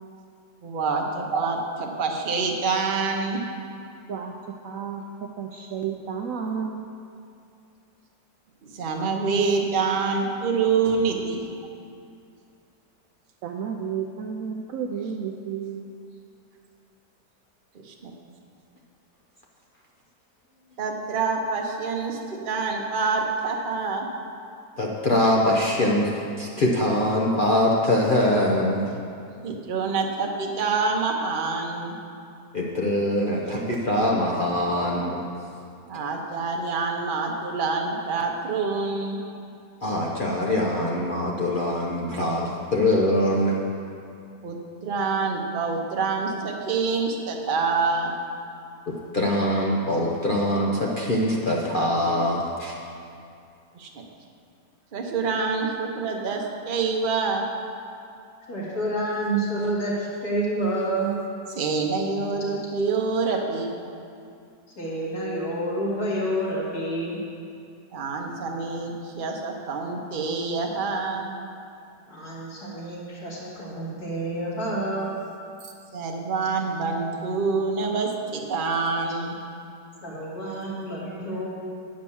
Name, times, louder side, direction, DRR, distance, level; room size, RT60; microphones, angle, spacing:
voice 1, 0.6-3.4 8.6-11.4 17.9-18.1 20.8-24.1 29.4-32.0 33.4-33.6 35.9-39.2 44.4-48.2 53.7-54.0 54.9-57.4 61.6-63.7 67.9-71.3 75.9-79.3, right 4 dB, 40° right, 1 dB, 0.8 m, -26 dB
voice 2, 4.6-5.0 5.4-6.8 13.4-15.8, right 7 dB, 65° right, 2 dB, 0.9 m, -31 dB
voice 3, 24.8-26.1 26.4-28.9 32.5-35.2 39.8-43.6 48.9-52.8, left 1 dB, 45° left, -3 dB, 0.7 m, -23 dB
voice 4, 58.5-61.1 64.8-67.2 72.1-75.1 80.0-81.5, right 1 dB, 65° left, -6 dB, 2.7 m, -28 dB
9.7 x 5.2 x 7.0 m, 2.5 s
omnidirectional pair, 1.8 m